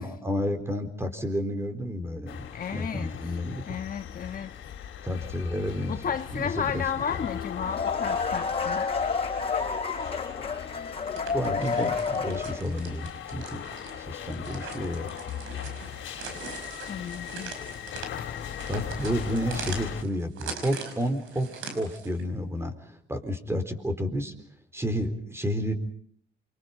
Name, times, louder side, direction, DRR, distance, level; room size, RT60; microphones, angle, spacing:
voice 1, 0.0-2.4 2.7-3.6 5.0-6.0 6.3-6.8 7.1-7.2 11.3-13.6 14.0-15.1 18.7-21.5 21.7-24.3 24.7-25.7, equal, 15° right, 9 dB, 4.1 m, -31 dB
sound 1, 2.3-20.0, left 9 dB, 75° left, 2.7 m, -39 dB
voice 2, 2.5-3.1 3.7-4.5 5.9-8.9 16.8-17.5, left 7 dB, 45° left, 7 dB, 1.3 m, -33 dB
sound 2, 7.4-12.8, left 5 dB, 30° left, 5.8 m, -30 dB
sound 3, 10.9-22.2, right 5 dB, 85° right, 5.2 m, -42 dB
28.5 x 24.5 x 5.5 m, 0.63 s
cardioid pair, 90°, 20 cm